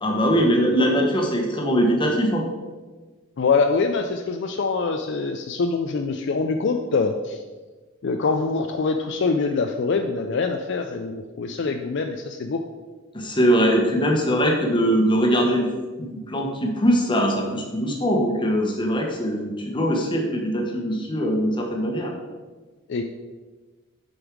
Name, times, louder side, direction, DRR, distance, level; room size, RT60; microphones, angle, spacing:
voice 1, 0.0-2.4 13.1-15.7 16.0-22.1, equal, 20° left, 1 dB, 1.1 m, -21 dB
voice 2, 3.4-7.4 8.0-12.6 22.9-23.0, left 4 dB, 55° left, 5 dB, 0.4 m, -24 dB
7.0 x 5.4 x 4.6 m, 1.3 s
head